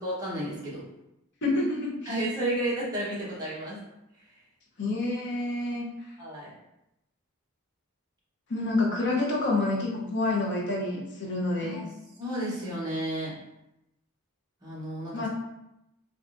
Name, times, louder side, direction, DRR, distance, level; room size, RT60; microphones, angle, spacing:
voice 1, 0.0-0.8 2.0-3.8 6.2-6.5 11.6-11.9 12.2-13.3 14.6-15.3, right 1 dB, 15° right, -8 dB, 1.0 m, -32 dB
voice 2, 1.4-2.2 4.8-5.9 8.5-11.8 15.1-15.3, left 2 dB, 55° left, -2 dB, 0.7 m, -28 dB
3.4 x 2.5 x 2.5 m, 0.87 s
head